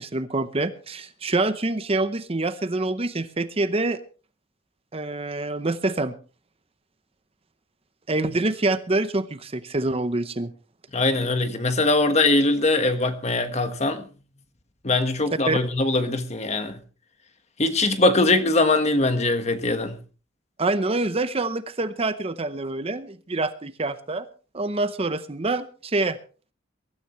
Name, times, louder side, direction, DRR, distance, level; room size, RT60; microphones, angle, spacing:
voice 1, 0.0-4.0 4.9-6.1 8.1-10.5 15.5-15.6 20.6-24.3 24.5-26.2, right 2 dB, 30° right, 0.8 m, -26 dB
voice 2, 10.9-14.1 14.8-16.8 17.6-20.0, left 2 dB, 35° left, 1.4 m, -22 dB
22.5 x 13.0 x 3.1 m
head